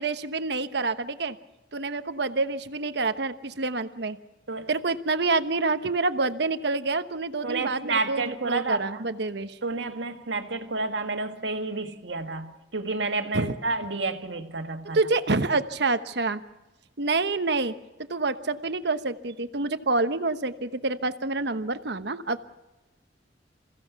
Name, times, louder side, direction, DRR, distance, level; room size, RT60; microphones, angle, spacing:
voice 1, 0.0-1.4 1.7-4.2 4.7-9.6 13.3-13.5 14.9-16.4 17.0-17.8 18.1-22.5, right 3 dB, 65° right, 1.1 m, -27 dB
voice 2, 7.4-9.1 9.6-15.0, right 3 dB, 85° right, 1.9 m, -30 dB
27.5 x 16.0 x 7.0 m
head